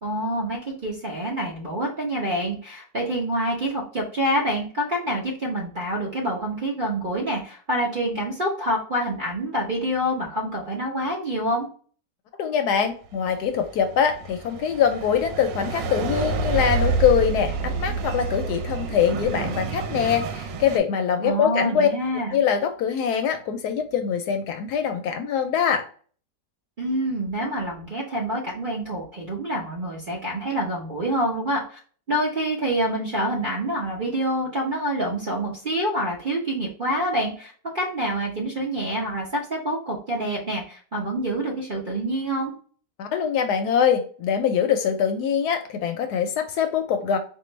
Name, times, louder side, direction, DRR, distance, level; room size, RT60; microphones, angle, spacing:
voice 1, 0.0-11.7 21.2-22.4 26.8-31.8 32.1-42.5, right 1 dB, 40° right, -4 dB, 0.7 m, -27 dB
voice 2, 12.4-21.9 22.3-25.9 43.0-47.2, left 7 dB, 70° left, 6 dB, 1.0 m, -23 dB
sound 1, 13.2-20.8, right 4 dB, 85° right, 1.3 m, -28 dB
4.5 x 2.5 x 3.1 m, 0.43 s
omnidirectional pair, 1.9 m